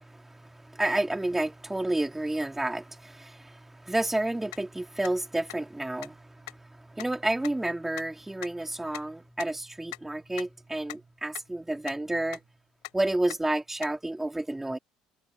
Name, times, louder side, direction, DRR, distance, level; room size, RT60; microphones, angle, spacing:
voice 1, 0.0-12.4 12.9-14.8, right 1 dB, 10° right, 2.6 m, -30 dB
sound 1, 4.5-4.6 5.0-5.1 5.5-5.6 6.0-6.1 6.5-6.6 7.0-7.1 7.4-7.5 8.0-8.1 8.4-8.5 8.9-9.0 9.4-9.5 9.9-10.0 10.4-10.5 10.9-11.0 11.3-11.4 11.8-11.9 12.3-12.4 12.8-12.9 13.3-13.4 13.8-13.9, left 27 dB, 80° left, 4.6 m, -39 dB
hypercardioid pair, 60°, 3 cm